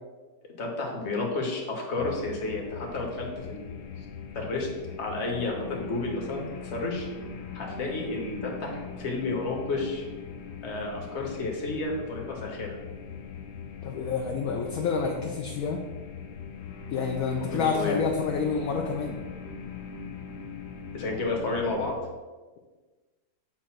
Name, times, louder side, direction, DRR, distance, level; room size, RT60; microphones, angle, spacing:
voice 1, 0.6-3.8 4.3-4.7 5.0-7.1 7.5-10.0 10.6-12.8 17.4-18.0 20.9-21.9, left 3 dB, 45° left, 0 dB, 1.3 m, -31 dB
sound 1, 2.0-21.9, left 6 dB, 90° left, 0.5 m, -40 dB
voice 2, 13.8-15.8 16.9-19.2, left 5 dB, 65° left, 1 dB, 0.9 m, -28 dB
7.4 x 2.6 x 5.8 m, 1.3 s
omnidirectional pair, 1.8 m